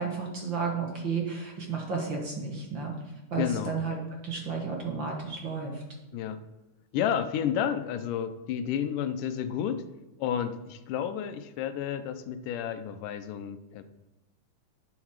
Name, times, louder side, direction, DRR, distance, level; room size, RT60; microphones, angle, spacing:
voice 1, 0.0-2.9 3.3-4.0 4.2-5.8, right 5 dB, 45° right, 0 dB, 2.0 m, -32 dB
voice 2, 3.4-3.8 6.1-6.4 6.9-9.8 10.2-13.8, left 9 dB, 85° left, 10 dB, 2.4 m, -31 dB
11.0 x 9.7 x 4.8 m, 0.98 s
omnidirectional pair, 3.6 m